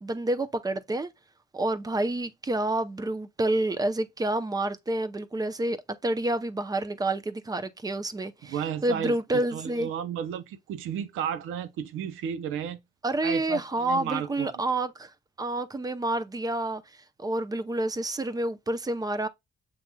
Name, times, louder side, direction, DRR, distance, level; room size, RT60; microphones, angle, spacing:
voice 1, 0.0-1.1 1.5-8.6 8.8-9.9 13.0-15.1 15.4-16.8 17.2-19.3, right 2 dB, 20° right, 0.6 m, -28 dB
voice 2, 8.4-12.8 13.2-14.5, right 8 dB, 90° right, 0.7 m, -33 dB
7.5 x 2.9 x 2.2 m
cardioid pair, 90°, 20 cm